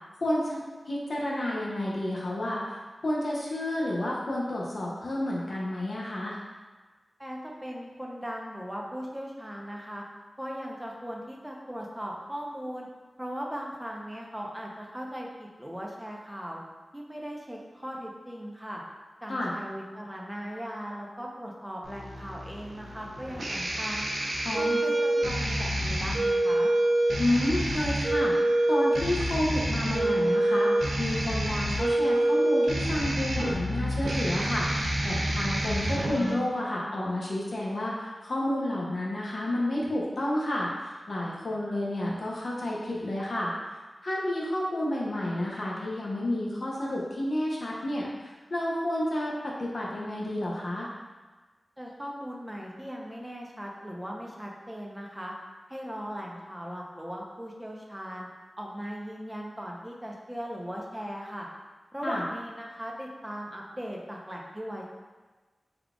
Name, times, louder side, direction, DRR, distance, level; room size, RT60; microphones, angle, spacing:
voice 1, 0.2-0.6 0.9-6.4 19.3-19.5 24.4-24.8 27.2-28.3 28.7-30.7 31.0-43.5 44.0-49.3 49.6-50.9 62.0-62.2, left 1 dB, 65° left, -4 dB, 0.7 m, -30 dB
voice 2, 7.2-10.0 10.4-12.9 13.2-16.6 16.9-18.8 19.2-24.1 24.6-26.7 51.8-55.3 55.7-58.3 58.6-61.5 61.9-64.9, equal, 10° right, -2 dB, 0.6 m, -38 dB
sound 1, 21.8-36.3, right 1 dB, 90° right, 0.5 m, -27 dB
3.7 x 2.3 x 3.5 m, 1.3 s
wide cardioid pair, 90°, 0 cm